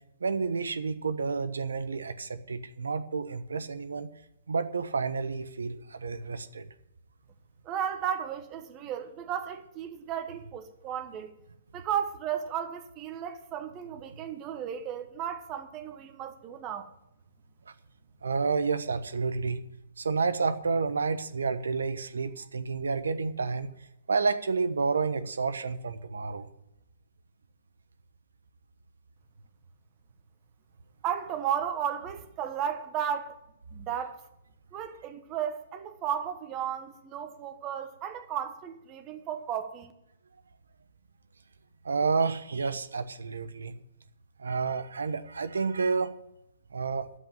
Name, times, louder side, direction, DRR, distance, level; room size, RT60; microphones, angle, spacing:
voice 1, 0.2-4.1 4.5-6.7 18.2-19.6 20.0-23.7 24.1-26.5 41.8-43.7 44.4-46.1 46.7-47.1, right 4 dB, 80° right, 1.1 m, -30 dB
voice 2, 7.6-11.3 11.7-16.9 31.0-33.4 33.7-34.2 34.7-39.9, right 9 dB, 30° right, 1.3 m, -34 dB
9.7 x 7.9 x 9.4 m
hypercardioid pair, 125°, 0 cm